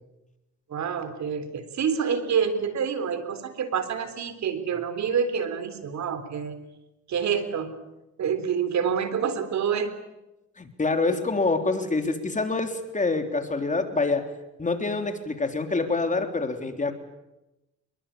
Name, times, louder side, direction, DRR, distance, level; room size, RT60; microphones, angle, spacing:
voice 1, 0.7-6.6 7.1-7.7 8.2-9.9 11.1-11.2, right 7 dB, 65° right, 10 dB, 3.6 m, -27 dB
voice 2, 10.6-14.3 14.6-16.9, left 3 dB, 25° left, 6 dB, 3.5 m, -26 dB
27.0 x 22.5 x 8.7 m, 0.95 s
cardioid pair, 90°, 30 cm